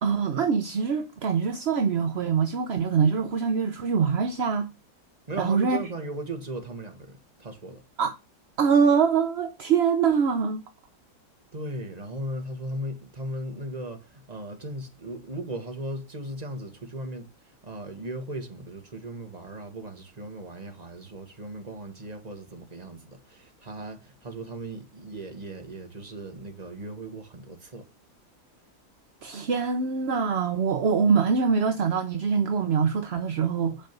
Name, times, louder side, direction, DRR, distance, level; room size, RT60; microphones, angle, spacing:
voice 1, 0.0-4.7 5.4-5.9 8.0-8.1 8.6-10.6 29.2-33.9, right 6 dB, 50° right, 0.8 m, -24 dB
voice 2, 5.3-7.8 11.5-27.9, right 1 dB, 25° right, 1.8 m, -37 dB
8.9 x 5.2 x 5.2 m
omnidirectional pair, 1.8 m